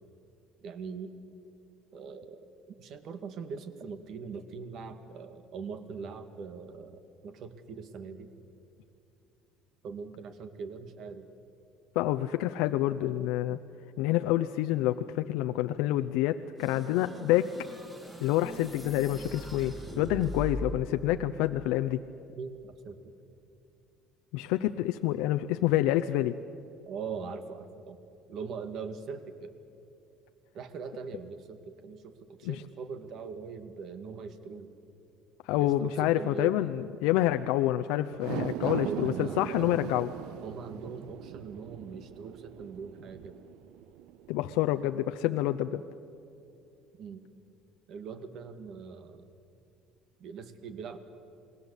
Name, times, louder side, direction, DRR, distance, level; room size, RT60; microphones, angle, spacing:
voice 1, 0.6-1.1 1.9-2.4 2.8-8.3 9.8-11.3 13.5-13.6 22.4-23.1 26.9-28.0 28.3-29.5 30.5-34.7 35.6-36.7 38.6-39.9 40.4-43.4 47.0-47.2 47.9-49.2 50.2-51.0, right 5 dB, 50° right, 10 dB, 1.9 m, -41 dB
voice 2, 12.0-13.6 14.0-17.5 18.2-22.0 24.3-26.4 32.4-32.6 35.5-40.1 44.3-45.8, left 14 dB, 85° left, 8 dB, 0.7 m, -28 dB
sound 1, 16.6-20.9, equal, 15° right, 3.5 m, -40 dB
sound 2, 38.1-44.6 45.0-45.1, right 13 dB, 75° right, 0.5 m, -39 dB
28.5 x 20.5 x 8.3 m, 2.7 s
cardioid pair, 145°, 0 cm